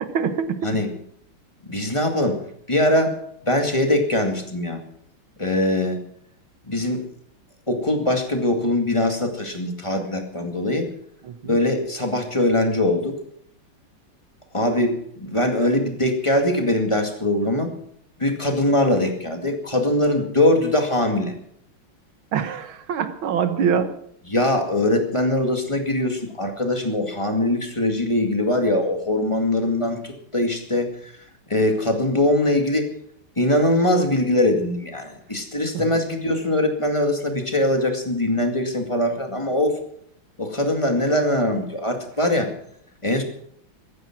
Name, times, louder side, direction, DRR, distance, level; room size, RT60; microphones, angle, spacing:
voice 1, 0.1-0.7 11.2-11.6 22.3-23.9 35.7-35.8, right 7 dB, 75° right, 10 dB, 2.1 m, -24 dB
voice 2, 1.6-2.4 2.7-3.2 3.4-4.8 5.4-6.0 6.6-7.0 7.7-10.9 11.4-13.2 14.5-17.7 18.2-21.3 24.3-31.1 31.5-32.9 33.4-39.8 40.4-42.5 43.0-43.2, left 1 dB, 15° left, 4 dB, 2.1 m, -22 dB
15.0 x 14.0 x 6.0 m, 0.68 s
omnidirectional pair, 2.3 m